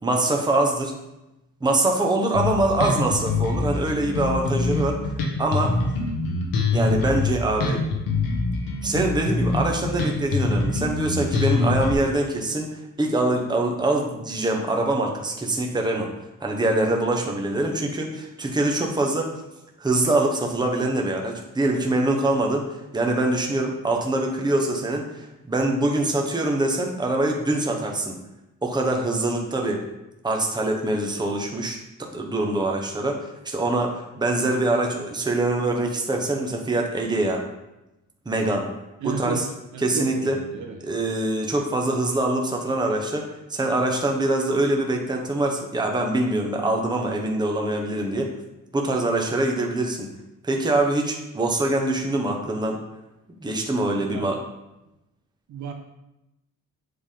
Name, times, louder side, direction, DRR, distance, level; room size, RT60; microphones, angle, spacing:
voice 1, 0.0-0.9 1.6-5.0 5.4-5.8 6.7-7.8 8.8-16.1 16.4-19.4 19.8-28.1 28.6-29.8 30.2-37.4 38.3-38.7 39.0-39.5 39.8-40.4 40.8-48.3 48.7-50.1 50.4-52.8 53.4-54.4, right 2 dB, 15° right, 1 dB, 1.0 m, -24 dB
Bass guitar, 2.3-11.9, left 3 dB, 90° left, 1.3 m, -24 dB
voice 2, 39.0-39.5 39.7-40.8 54.0-54.3 55.5-55.7, right 6 dB, 60° right, 3 dB, 1.0 m, -32 dB
8.0 x 3.6 x 5.0 m, 0.94 s
cardioid pair, 120°, 33 cm